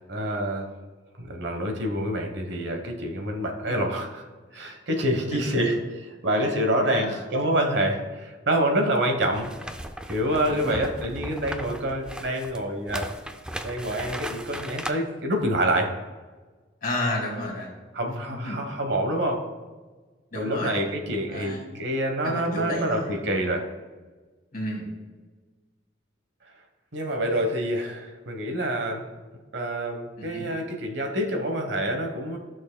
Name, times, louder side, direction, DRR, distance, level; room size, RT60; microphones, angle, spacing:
voice 1, 0.1-0.7 1.2-4.2 4.5-9.5 10.1-13.1 13.6-15.9 17.9-19.4 20.3-23.6 26.9-29.1 29.5-32.4, right 1 dB, 65° right, 3 dB, 1.1 m, -27 dB
voice 2, 5.3-5.7 6.9-7.2 10.5-10.9 16.8-17.7 18.1-18.6 20.3-21.7 22.2-23.2 24.5-24.9 30.2-30.5, left 1 dB, 50° left, -1 dB, 2.2 m, -32 dB
sound 1, 9.3-14.9, right 1 dB, 5° right, 0.4 m, -37 dB
14.0 x 6.2 x 2.2 m, 1.3 s
head